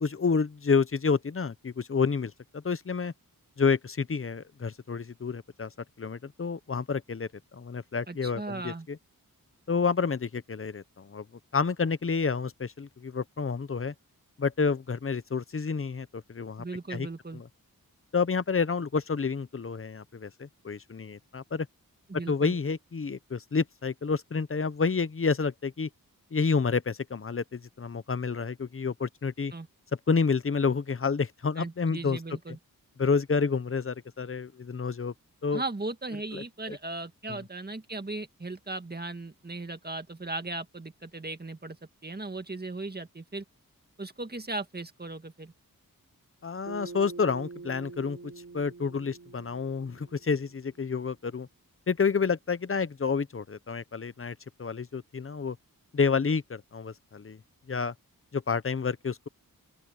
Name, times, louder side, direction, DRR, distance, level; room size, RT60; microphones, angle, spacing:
voice 1, 0.0-3.1 3.6-5.7 6.0-7.3 7.5-9.0 9.7-11.2 11.5-13.9 14.4-16.6 16.9-17.1 17.3-17.4 18.1-21.7 22.3-25.9 26.3-29.5 30.1-32.2 33.0-35.1 35.4-35.6 36.3-36.8 37.3-37.4 46.4-48.2 48.5-51.5 51.9-55.6 55.9-57.4 57.7-57.9 58.3-59.3, left 5 dB, 40° left, 0.8 m, -29 dB
voice 2, 8.1-8.9 16.6-17.4 22.1-22.6 29.5-29.7 31.6-32.6 35.5-41.8 42.0-43.4 44.0-45.5, right 2 dB, 25° right, 1.9 m, -37 dB
Bass guitar, 46.7-51.1, right 3 dB, 50° right, 4.5 m, -45 dB
open air
wide cardioid pair, 105°, 35 cm